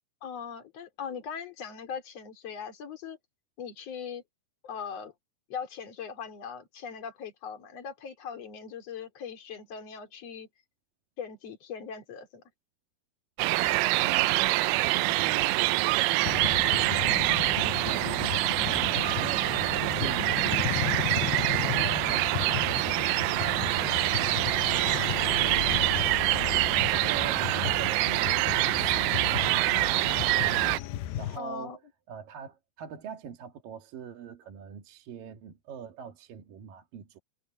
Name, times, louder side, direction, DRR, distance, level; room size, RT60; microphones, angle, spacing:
voice 1, 0.2-3.2 3.6-4.2 4.6-5.1 5.5-10.5 11.2-12.4 19.4-19.5 31.4-31.8, left 7 dB, 40° left, 4.1 m, -40 dB
sound 1, 13.4-30.8, right 20 dB, 85° right, 2.1 m, -26 dB
voice 2, 13.7-30.4 31.2-31.8 32.1-37.2, right 8 dB, 60° right, 3.4 m, -44 dB
sound 2, 16.3-31.4, left 13 dB, 75° left, 2.6 m, -35 dB
omnidirectional pair, 4.6 m